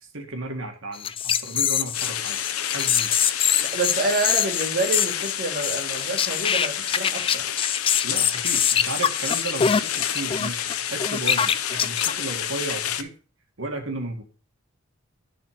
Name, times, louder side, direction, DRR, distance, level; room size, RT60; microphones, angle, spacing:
voice 1, 0.0-3.1 8.0-13.1 13.6-14.2, right 2 dB, 65° right, 1.9 m, -34 dB
sound 1, 0.9-12.1, left 8 dB, 25° left, 0.4 m, -24 dB
sound 2, 1.9-13.0, left 10 dB, 90° left, 0.7 m, -30 dB
voice 2, 3.6-7.4, right 2 dB, 45° right, 2.1 m, -28 dB
10.5 x 4.3 x 4.9 m
head